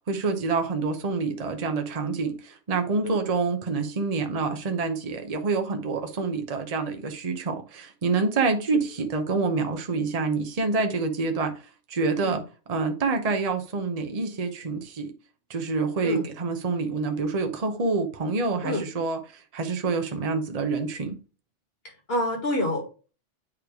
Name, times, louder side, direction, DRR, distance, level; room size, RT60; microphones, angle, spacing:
voice 1, 0.1-11.5 11.9-12.4 12.7-15.1 15.5-21.2, right 4 dB, 35° right, 0.9 m, -27 dB
voice 2, 22.1-23.1, left 1 dB, 55° left, 2.4 m, -28 dB
8.8 x 3.3 x 4.7 m
omnidirectional pair, 1.2 m